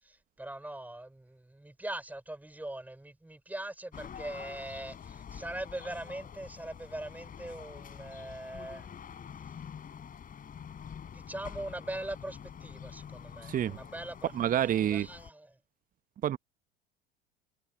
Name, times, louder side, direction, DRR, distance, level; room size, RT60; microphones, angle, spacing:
voice 1, 0.0-8.9 11.1-14.3 14.6-15.6, right 1 dB, 5° right, 5.6 m, -41 dB
sound 1, 3.9-15.3, left 8 dB, 30° left, 7.9 m, -47 dB
voice 2, 13.4-13.8 14.3-15.1 16.2-16.4, right 10 dB, 30° right, 1.2 m, -28 dB
figure-of-eight pair, 75°, 29 cm